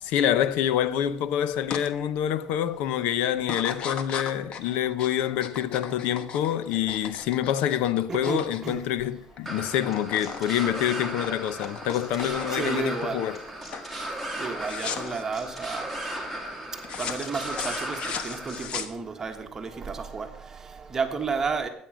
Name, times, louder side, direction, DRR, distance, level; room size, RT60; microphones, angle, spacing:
voice 1, 0.0-13.4, left 10 dB, 80° left, 0.8 m, -26 dB
sound 1, 1.7-1.9 2.3-2.7 3.4-9.5 9.7-10.4 10.7-12.7 13.2-13.5 13.7-13.9 14.6-15.2 16.8-19.3, left 7 dB, 50° left, 1.2 m, -36 dB
voice 2, 8.1-8.8 12.5-13.2 14.4-15.9 17.0-18.0 18.2-20.3 20.9-21.7, right 5 dB, 20° right, 1.5 m, -31 dB
sound 2, 9.5-18.7, right 1 dB, 5° left, 3.2 m, -36 dB
13.0 x 9.1 x 6.3 m
cardioid pair, 135°, 2 cm